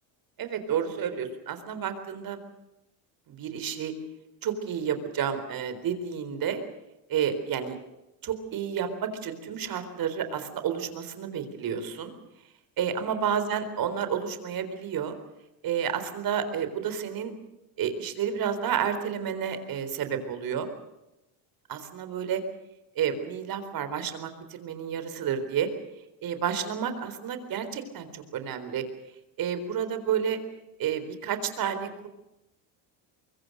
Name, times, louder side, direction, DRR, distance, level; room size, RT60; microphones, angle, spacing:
voice 1, 0.4-2.4 3.3-3.9 4.4-6.6 7.1-7.8 8.2-12.1 12.8-15.1 15.6-17.3 17.8-20.7 21.7-22.4 23.0-25.7 26.2-28.8 29.4-30.4 30.8-32.1, right 8 dB, 50° right, 10 dB, 4.1 m, -30 dB
23.5 x 23.5 x 6.5 m, 0.93 s
supercardioid pair, 105°, 43 cm